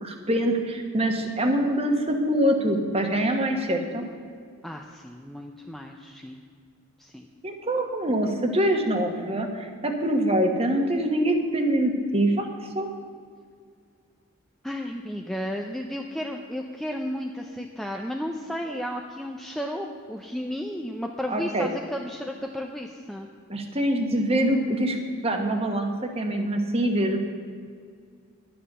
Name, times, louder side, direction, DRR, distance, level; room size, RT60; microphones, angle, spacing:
voice 1, 0.0-4.0 7.4-12.9 21.3-21.7 23.5-25.0 25.2-27.2, right 1 dB, 25° right, 4 dB, 1.3 m, -24 dB
voice 2, 4.6-6.4 7.0-7.3 14.6-23.3, equal, ahead, 1 dB, 0.5 m, -33 dB
12.0 x 9.9 x 6.7 m, 2.1 s
head